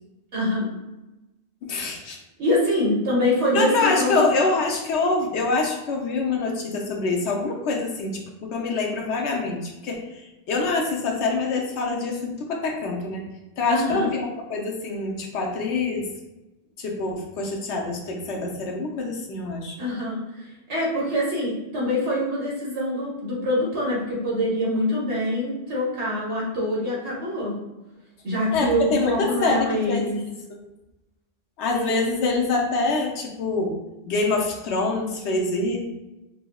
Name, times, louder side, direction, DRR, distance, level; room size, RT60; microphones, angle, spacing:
voice 1, 0.3-0.7 2.4-4.2 13.7-14.1 19.8-27.6 28.2-30.2 31.7-32.1, left 1 dB, 90° right, -5 dB, 1.6 m, -25 dB
voice 2, 1.6-2.2 3.5-13.3 13.6-16.1 16.8-19.8 28.5-30.0 31.6-33.8 34.0-35.8, left 3 dB, 90° left, 0 dB, 1.0 m, -25 dB
5.4 x 2.0 x 2.2 m, 1.0 s
omnidirectional pair, 1.1 m